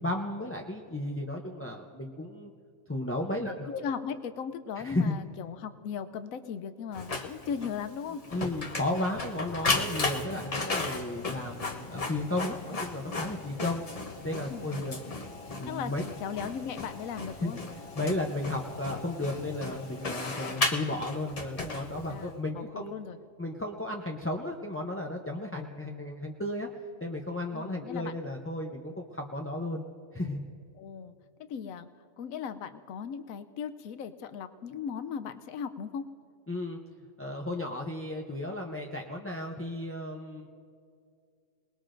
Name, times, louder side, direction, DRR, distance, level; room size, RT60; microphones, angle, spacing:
voice 1, 0.0-2.5 2.9-3.8 4.8-5.1 8.3-13.8 14.2-16.0 17.4-17.5 17.9-22.9 23.4-26.7 27.0-29.9 30.1-30.5 36.5-36.8 37.2-40.5, left 1 dB, 15° left, 0 dB, 0.4 m, -34 dB
voice 2, 3.4-8.2 14.5-14.7 15.7-15.9 16.2-17.6 22.1-23.2 27.5-28.2 30.8-31.1 31.5-31.9 32.2-36.1, left 7 dB, 85° left, 10 dB, 1.0 m, -37 dB
Printer, 6.9-22.3, left 3 dB, 30° left, 0.8 m, -35 dB
27.5 x 20.0 x 2.6 m, 2.3 s
omnidirectional pair, 1.4 m